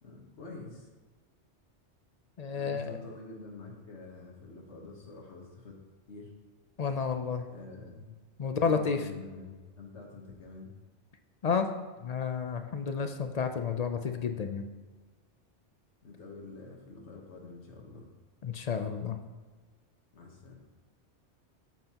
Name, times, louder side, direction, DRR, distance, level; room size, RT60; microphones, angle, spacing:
voice 1, 0.0-0.9 2.5-5.8 6.1-6.3 7.5-10.7 16.0-18.1 20.1-20.6, left 3 dB, 80° left, -1 dB, 1.5 m, -47 dB
voice 2, 2.4-2.9 6.8-7.5 8.4-9.0 11.4-11.7 12.0-14.7 18.4-19.2, left 6 dB, 50° left, 7 dB, 0.5 m, -31 dB
9.2 x 7.5 x 2.9 m, 1.3 s
omnidirectional pair, 1.2 m